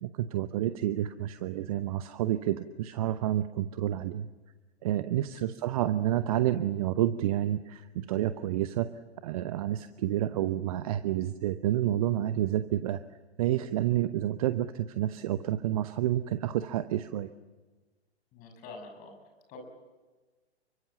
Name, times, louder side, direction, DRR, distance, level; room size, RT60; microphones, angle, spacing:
voice 1, 0.0-4.3 4.8-8.9 9.2-13.0 13.4-17.3, right 12 dB, 35° right, 12 dB, 0.9 m, -29 dB
voice 2, 18.3-19.1 19.5-19.6, left 3 dB, 25° left, 4 dB, 6.6 m, -46 dB
30.0 x 24.0 x 7.3 m, 1.3 s
figure-of-eight pair, 120°, 33 cm